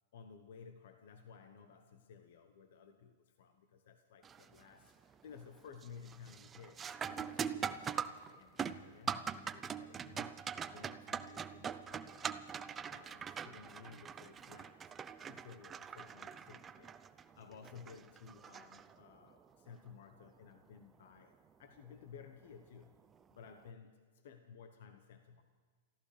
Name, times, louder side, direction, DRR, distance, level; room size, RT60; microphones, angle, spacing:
voice 1, 0.1-12.4 12.9-23.0 23.3-25.4, left 6 dB, 70° left, 7 dB, 1.1 m, -56 dB
sound 1, 4.2-4.6 5.0-5.5 5.8-19.3 21.8-21.9 22.8-23.0, right 7 dB, 20° right, 0.6 m, -43 dB
29.0 x 15.0 x 3.4 m, 1.6 s
hypercardioid pair, 120°, 0 cm